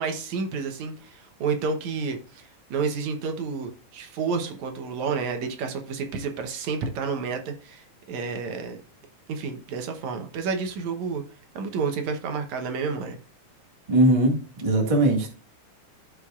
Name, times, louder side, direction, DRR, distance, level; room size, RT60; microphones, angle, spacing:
voice 1, 0.0-8.8 9.3-11.2 11.6-13.2, right 5 dB, 75° right, 5 dB, 2.3 m, -30 dB
voice 2, 13.9-15.3, right 1 dB, 15° right, 1 dB, 1.2 m, -20 dB
15.0 x 5.0 x 2.4 m, 0.37 s
omnidirectional pair, 3.4 m